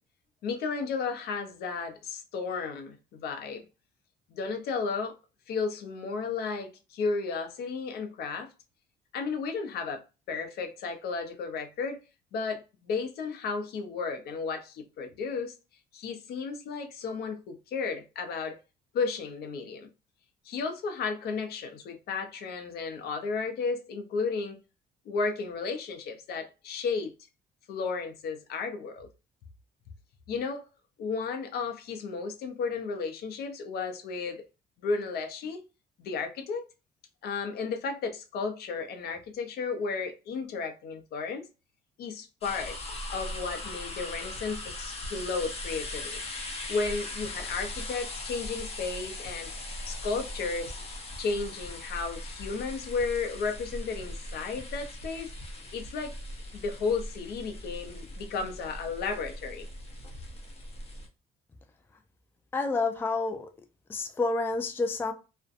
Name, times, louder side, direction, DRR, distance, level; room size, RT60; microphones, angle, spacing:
voice 1, 0.4-3.6 4.3-5.1 5.5-8.5 9.1-12.0 12.3-15.5 15.9-18.6 18.9-19.9 20.4-24.6 25.1-27.1 27.7-29.1 30.3-30.7 31.0-34.4 34.8-35.6 36.0-36.6 37.2-41.5 42.0-42.8 43.1-46.2 46.7-49.5 49.9-50.8 51.2-55.3 55.7-56.1 56.5-59.7, left 4 dB, 70° left, 0.6 m, -33 dB
sound 1, 42.4-61.1, left 1 dB, 35° left, 0.7 m, -39 dB
voice 2, 62.5-63.5 63.9-65.1, left 3 dB, 15° left, 0.3 m, -29 dB
2.5 x 2.1 x 2.4 m
cardioid pair, 110°, 17 cm